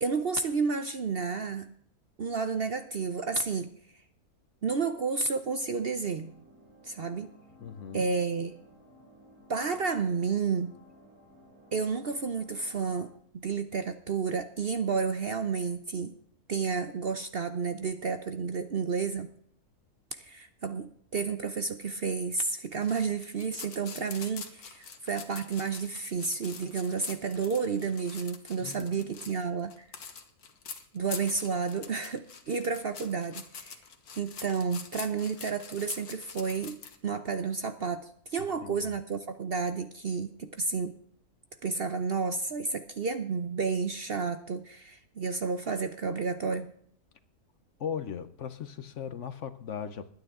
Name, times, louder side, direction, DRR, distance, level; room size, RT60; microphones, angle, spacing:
voice 1, 0.0-1.7 2.2-3.7 4.6-6.3 6.8-7.3 7.9-8.5 9.5-10.7 11.7-16.1 16.5-19.3 20.2-29.9 30.9-33.8 34.2-41.0 41.6-46.7, right 5 dB, 50° right, 0.8 m, -31 dB
sound 1, 5.6-13.1, left 1 dB, 85° right, 6.2 m, -57 dB
voice 2, 7.6-8.1 28.6-29.1 38.4-38.9 47.8-50.1, left 8 dB, 60° left, 1.0 m, -38 dB
sound 2, 22.8-37.0, left 6 dB, 80° left, 1.8 m, -45 dB
20.5 x 9.6 x 3.7 m
omnidirectional pair, 1.6 m